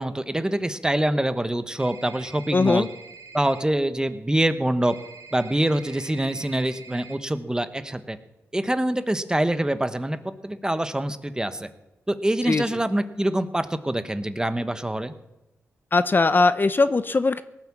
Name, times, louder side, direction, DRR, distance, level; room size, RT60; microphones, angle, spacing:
voice 1, 0.0-2.9 3.3-5.0 5.3-8.2 8.5-11.7 12.1-15.1, right 1 dB, 15° right, 11 dB, 1.1 m, -25 dB
sound 1, 1.8-3.6 4.8-7.2, right 4 dB, 75° right, 2.0 m, -45 dB
voice 2, 2.5-2.9 12.5-12.6 15.9-17.4, left 3 dB, 40° left, 13 dB, 0.6 m, -20 dB
18.0 x 8.2 x 7.3 m, 0.93 s
cardioid pair, 60°, 5 cm